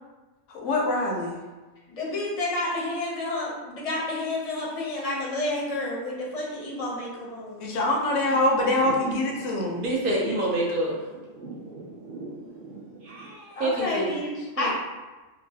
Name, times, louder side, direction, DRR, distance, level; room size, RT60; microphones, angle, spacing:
voice 1, 0.5-1.4 7.6-9.8, left 1 dB, 90° left, -1 dB, 1.0 m, -24 dB
voice 2, 1.9-7.7 13.6-14.7, left 2 dB, 40° left, -4 dB, 0.5 m, -30 dB
Thunder / Rain, 6.3-13.3, right 2 dB, 80° right, 1.1 m, -42 dB
voice 3, 9.8-11.0 13.0-14.2 14.6-14.7, right 1 dB, 55° right, -4 dB, 0.7 m, -27 dB
3.0 x 2.3 x 2.6 m, 1.2 s
omnidirectional pair, 1.3 m